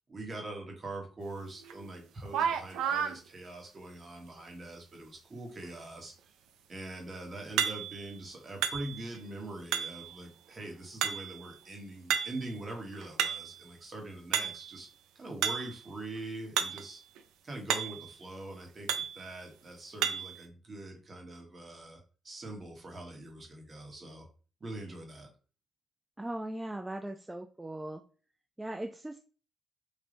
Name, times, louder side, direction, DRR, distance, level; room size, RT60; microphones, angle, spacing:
voice 1, 0.1-6.1 6.7-14.9 15.1-17.0 17.4-24.3 24.6-25.3, right 2 dB, 35° right, 2 dB, 1.4 m, -43 dB
sound 1, 1.7-1.8 2.3-3.2 7.6-8.1 8.6-9.2 9.7-10.1 11.0-11.5 12.1-12.5 12.9-13.6 14.3-14.8 15.4-15.8 16.6-16.9 17.2-17.3 17.7-18.1 18.9-19.2 20.0-20.4, right 8 dB, 90° right, 0.4 m, -32 dB
voice 2, 26.2-28.0 28.6-29.2, right 1 dB, 10° right, 5 dB, 0.3 m, -39 dB
3.4 x 2.6 x 3.8 m, 0.36 s
cardioid pair, 90°, 0 cm